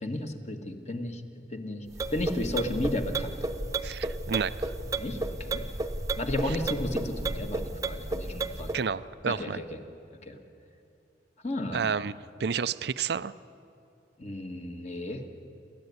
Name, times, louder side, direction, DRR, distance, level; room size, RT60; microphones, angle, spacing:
voice 1, 0.0-1.2 1.5-1.9 2.1-3.4 5.0-5.6 6.2-8.7 9.3-9.8 10.2-10.4 11.4-11.8 14.2-15.2, left 1 dB, 40° left, 5 dB, 1.8 m, -33 dB
sound 1, 1.9-8.8, right 2 dB, 20° right, 0.9 m, -33 dB
voice 2, 3.8-4.7 6.5-6.6 8.7-9.6 11.7-13.3, right 6 dB, 65° right, 16 dB, 0.5 m, -31 dB
29.0 x 13.5 x 9.6 m, 2.7 s
head